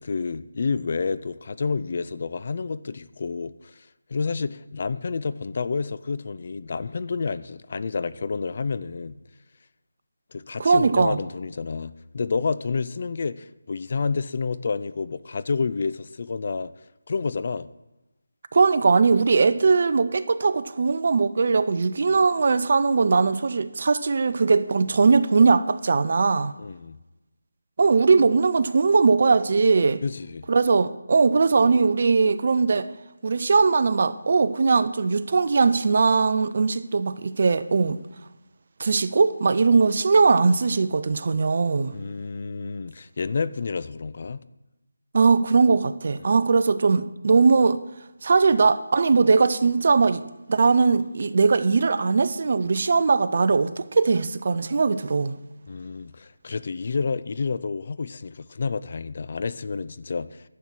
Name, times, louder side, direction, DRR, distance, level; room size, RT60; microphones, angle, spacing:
voice 1, 0.0-9.2 10.3-16.7 17.1-17.7 26.6-27.0 30.0-30.5 41.9-44.4 46.2-46.3 55.7-60.4, left 4 dB, 45° left, 0.4 m, -29 dB
voice 2, 10.6-11.2 18.5-26.5 27.8-30.0 30.5-32.9 33.2-38.0 38.8-41.9 45.1-47.8 48.2-50.2 50.5-55.4, right 4 dB, 45° right, 0.6 m, -20 dB
11.0 x 7.1 x 6.2 m
figure-of-eight pair, 165°, 0 cm